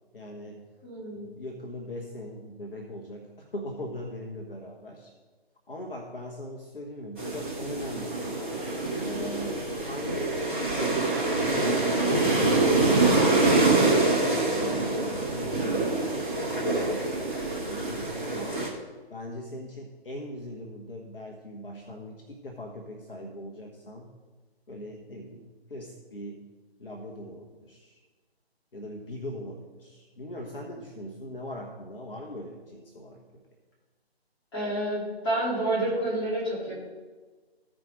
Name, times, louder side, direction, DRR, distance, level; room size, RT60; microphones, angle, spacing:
voice 1, 0.1-0.6 1.1-5.1 5.7-8.5 9.0-13.3 13.8-16.2 16.5-18.6 19.1-24.1 24.7-26.4 26.8-28.0 28.7-33.2, left 1 dB, 60° left, -1 dB, 1.3 m, -40 dB
voice 2, 0.8-1.3 34.5-36.8, right 1 dB, 20° left, -5 dB, 2.8 m, -29 dB
sound 1, 7.2-18.7, right 2 dB, 10° right, 0.8 m, -25 dB
14.5 x 4.9 x 3.9 m, 1.3 s
figure-of-eight pair, 150°, 32 cm